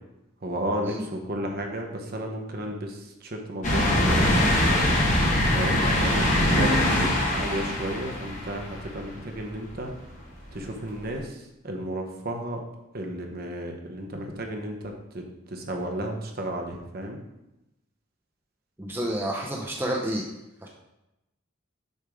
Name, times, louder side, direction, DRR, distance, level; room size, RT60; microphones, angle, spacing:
voice 1, 0.4-4.4 5.5-9.9 10.5-12.6 12.9-17.2, right 1 dB, 45° right, 2 dB, 0.9 m, -33 dB
sound 1, 3.6-9.2 9.7-9.8 11.1-11.2, left 1 dB, 35° left, 1.1 m, -23 dB
voice 2, 18.8-20.2 20.6-20.7, right 1 dB, 10° right, -1 dB, 0.5 m, -29 dB
6.6 x 3.5 x 4.8 m, 0.92 s
head